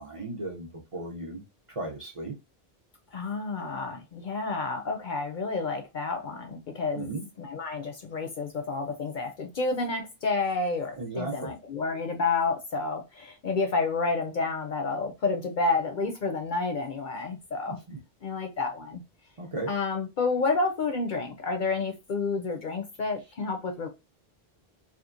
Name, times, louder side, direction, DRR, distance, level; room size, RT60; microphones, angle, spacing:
voice 1, 0.0-1.4 1.7-2.3 6.9-7.2 11.0-11.5 17.9-18.0 19.4-19.7, right 2 dB, 40° right, 0.6 m, -35 dB
voice 2, 3.1-7.1 7.4-17.8 18.2-19.0 19.7-23.9, left 3 dB, 60° left, 0.6 m, -30 dB
2.9 x 2.3 x 2.4 m
omnidirectional pair, 1.1 m